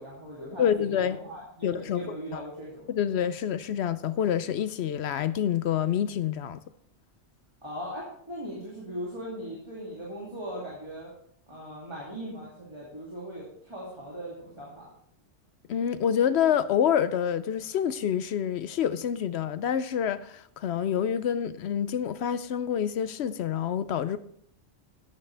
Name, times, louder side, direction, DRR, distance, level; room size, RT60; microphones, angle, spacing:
voice 1, 0.0-2.9 7.6-11.1 11.5-14.9, equal, 25° right, 2.8 m, -39 dB
voice 2, 0.6-1.2 1.6-2.0 2.3-2.4 2.9-6.6 15.7-24.2, left 9 dB, 70° left, 0.8 m, -27 dB
12.5 x 9.8 x 3.3 m
omnidirectional pair, 1.2 m